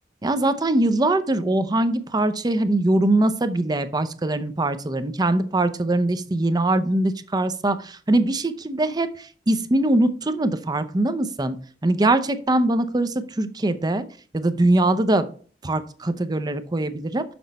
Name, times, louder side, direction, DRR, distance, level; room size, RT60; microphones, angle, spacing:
voice 1, 0.2-11.6 11.8-14.0 14.3-15.3 15.6-17.2, right 2 dB, 25° right, 11 dB, 0.6 m, -22 dB
6.4 x 6.0 x 4.1 m, 0.42 s
head